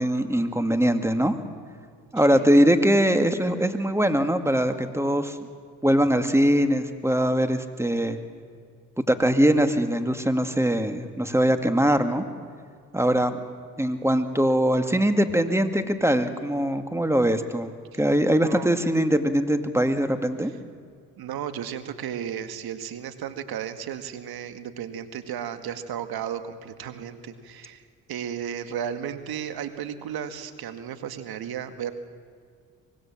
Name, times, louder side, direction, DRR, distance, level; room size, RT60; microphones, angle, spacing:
voice 1, 0.0-1.3 2.1-5.4 5.8-8.2 9.0-12.2 12.9-13.4 13.8-20.5, equal, 5° right, 8 dB, 2.2 m, -22 dB
voice 2, 21.2-27.8 28.1-31.9, right 9 dB, 65° right, 9 dB, 1.9 m, -34 dB
24.5 x 19.5 x 7.5 m, 2.1 s
hypercardioid pair, 55°, 40 cm